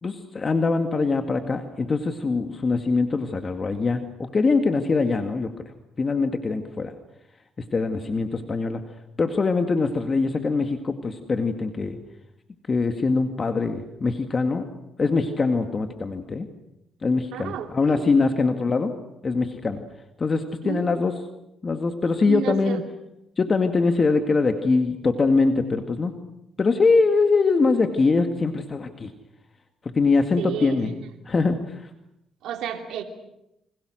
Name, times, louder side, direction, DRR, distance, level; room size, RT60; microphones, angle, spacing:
voice 1, 0.0-5.5 6.0-6.9 7.6-8.8 9.2-12.0 12.7-14.7 15.0-16.5 17.0-18.9 19.2-19.8 20.2-21.2 21.6-22.8 23.4-26.1 26.6-29.1 29.8-30.9 31.3-31.9, left 4 dB, 35° left, 6 dB, 2.1 m, -23 dB
voice 2, 17.3-18.3 20.6-20.8 22.3-22.8 30.4-30.9 32.4-33.0, right 9 dB, 85° right, 5 dB, 3.0 m, -31 dB
29.5 x 26.0 x 6.4 m, 0.86 s
cardioid pair, 90°, 0 cm